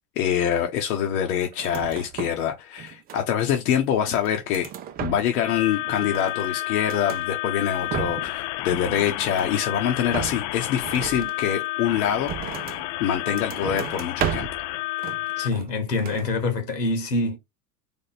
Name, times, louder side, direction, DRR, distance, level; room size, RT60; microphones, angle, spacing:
voice 1, 0.2-4.7 5.0-12.3 13.0-14.5, left 9 dB, 65° left, 1.1 m, -25 dB
sound 1, 1.5-2.5 2.8-3.6 4.0-5.5 5.8-7.3 7.7-8.4 8.7-9.6 10.1-12.9 13.2-14.7 15.0-15.7 16.0-16.3, right 10 dB, 20° right, 0.4 m, -34 dB
sound 2, 5.4-15.5, left 18 dB, 40° left, 0.5 m, -31 dB
voice 2, 15.4-17.4, left 3 dB, 90° left, 1.8 m, -25 dB
3.6 x 3.5 x 4.2 m
hypercardioid pair, 90°, 47 cm